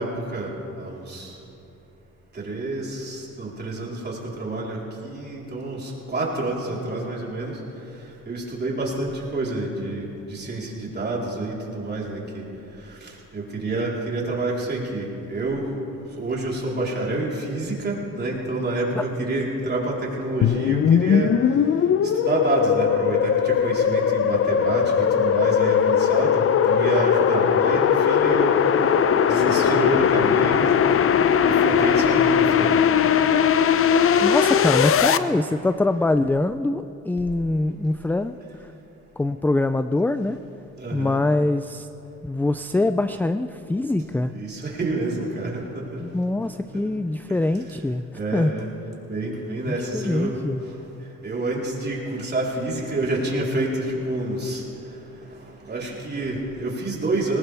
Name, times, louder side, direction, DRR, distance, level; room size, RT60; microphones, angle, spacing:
voice 1, 0.0-1.3 2.3-7.6 8.3-12.4 12.9-15.7 16.2-21.4 22.0-28.6 29.3-30.7 31.4-32.9 34.1-34.3 40.8-41.2 44.3-46.0 46.7-46.8 47.3-47.4 48.1-48.7 49.1-50.4 51.2-54.6 55.7-57.4, right 2 dB, 35° right, -4 dB, 4.0 m, -28 dB
sound 1, 20.4-35.2, left 8 dB, 45° left, 0.6 m, -19 dB
voice 2, 34.2-38.4 39.2-40.4 40.9-41.9 42.2-44.4 46.0-48.6 49.7-50.6, left 2 dB, 5° left, 11 dB, 0.3 m, -24 dB
21.0 x 18.5 x 3.5 m, 2.9 s
cardioid pair, 90°, 30 cm